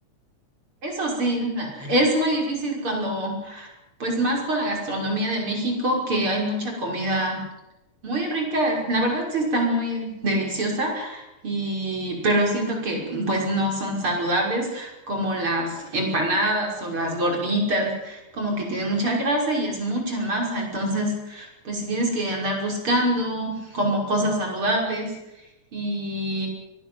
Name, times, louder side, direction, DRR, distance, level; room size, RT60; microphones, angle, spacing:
voice 1, 0.8-3.7 4.0-7.4 8.0-25.1 25.7-26.5, right 1 dB, 45° right, 1 dB, 6.6 m, -25 dB
25.0 x 19.0 x 7.9 m, 0.92 s
omnidirectional pair, 3.3 m